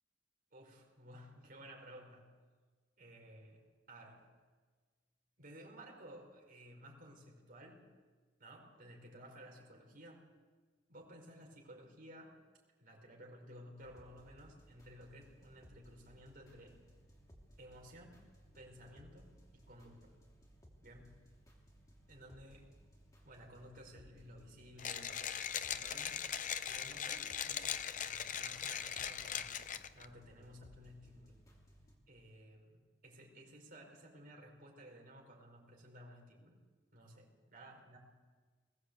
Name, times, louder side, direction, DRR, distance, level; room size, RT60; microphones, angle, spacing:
voice 1, 0.5-2.3 3.0-4.3 5.4-7.9 8.4-10.2 10.9-12.4 12.8-16.8 17.6-18.2 18.5-20.2 20.8-21.2 22.1-22.7 23.2-26.2 26.7-31.3 32.1-36.6 36.9-38.0, equal, 50° right, 0 dB, 4.8 m, -56 dB
sound 1, 13.8-32.0, equal, 20° left, 3.1 m, -62 dB
Mechanisms, 24.8-30.0, left 8 dB, 45° left, 0.7 m, -40 dB
21.0 x 16.5 x 8.1 m, 1.4 s
head